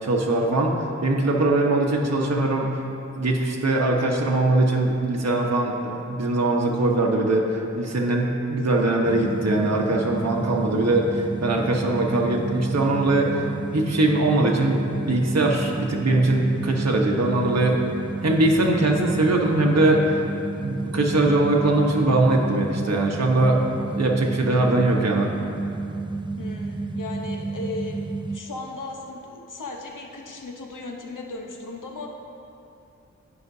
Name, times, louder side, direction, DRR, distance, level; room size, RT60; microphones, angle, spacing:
voice 1, 0.0-2.7 3.2-13.4 13.7-17.8 18.2-20.1 20.6-25.3, right 2 dB, 60° right, -1 dB, 1.1 m, -21 dB
sound 1, 9.0-28.4, right 3 dB, 15° right, 0.3 m, -31 dB
voice 2, 26.4-28.0 28.3-32.1, left 3 dB, 90° left, 1 dB, 1.0 m, -36 dB
17.5 x 5.8 x 2.7 m, 2.7 s
cardioid pair, 45°, 30 cm